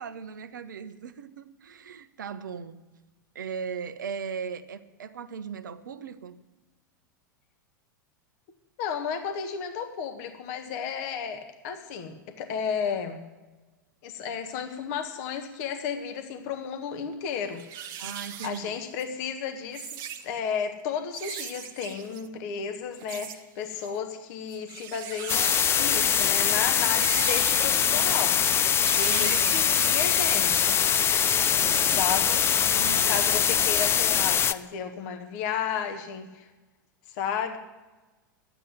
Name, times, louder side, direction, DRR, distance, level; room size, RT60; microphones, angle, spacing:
voice 1, 0.0-2.8 3.3-6.4 18.0-18.8 29.1-29.6 31.6-32.2 32.7-33.3, right 6 dB, 65° right, 9 dB, 0.9 m, -38 dB
voice 2, 8.8-13.2 14.0-17.8 18.4-28.4 28.9-30.8 31.7-32.5 33.1-36.4 37.1-37.6, left 7 dB, 50° left, 6 dB, 1.5 m, -33 dB
sound 1, 17.0-17.1 17.5-19.0 19.6-20.3 21.1-22.3 23.0-23.4 23.7-24.0 24.5-26.2 26.9-27.8 28.7-29.8, right 9 dB, 40° right, 1.1 m, -39 dB
sound 2, 25.3-34.5, left 8 dB, 25° left, 0.5 m, -23 dB
12.0 x 9.1 x 9.8 m, 1.2 s
figure-of-eight pair, 90°, 11 cm